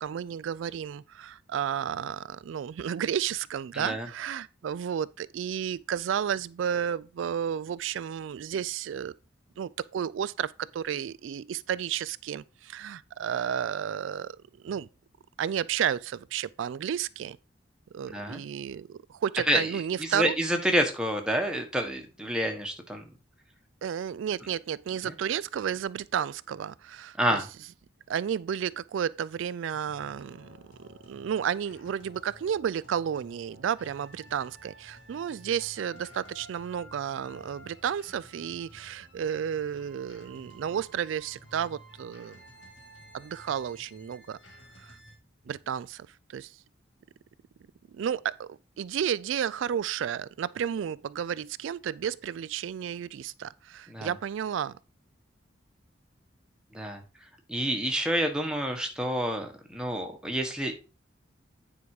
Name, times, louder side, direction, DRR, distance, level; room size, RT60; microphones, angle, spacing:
voice 1, 0.0-9.1 9.6-14.4 14.6-14.9 15.4-17.4 17.9-20.4 23.8-27.4 28.1-42.4 43.1-44.4 44.8-45.0 45.5-46.6 47.9-54.8, right 8 dB, 75° right, 0.3 m, -32 dB
voice 2, 3.7-4.1 18.1-18.4 19.5-19.7 20.0-23.2 25.0-25.1 27.2-27.5 53.9-54.1 56.7-60.7, equal, 5° right, 1.4 m, -29 dB
sound 1, 29.7-45.2, equal, 80° left, 2.5 m, -52 dB
9.4 x 4.8 x 4.8 m
head